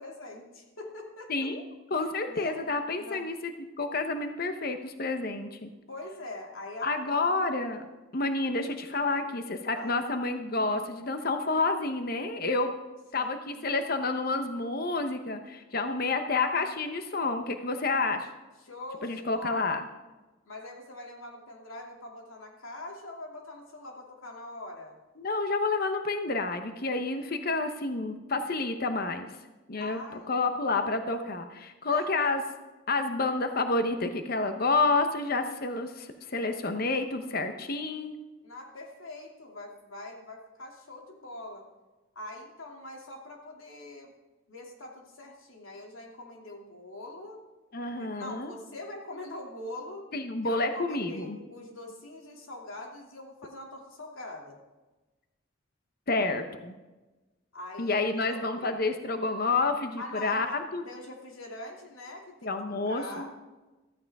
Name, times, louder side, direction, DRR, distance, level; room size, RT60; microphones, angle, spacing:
voice 1, 0.0-1.3 2.0-2.6 3.0-3.3 5.9-7.2 9.2-9.4 9.7-10.0 13.1-13.8 18.6-19.6 20.4-25.0 29.8-30.3 31.8-32.3 38.4-41.6 42.1-44.1 44.5-47.4 48.0-50.1 50.4-54.6 57.5-58.0 58.3-58.8 60.0-60.5 60.8-63.3, left 2 dB, 80° left, 0 dB, 2.7 m, -43 dB
voice 2, 1.3-1.6 1.9-5.7 6.8-7.8 8.1-12.7 13.1-18.3 19.0-19.8 25.2-29.3 29.7-30.0 30.3-32.4 32.9-38.1 47.7-48.5 50.1-51.4 56.1-56.7 57.8-60.9 62.4-63.3, left 3 dB, 45° left, 7 dB, 0.9 m, -29 dB
14.5 x 14.5 x 3.6 m, 1.1 s
head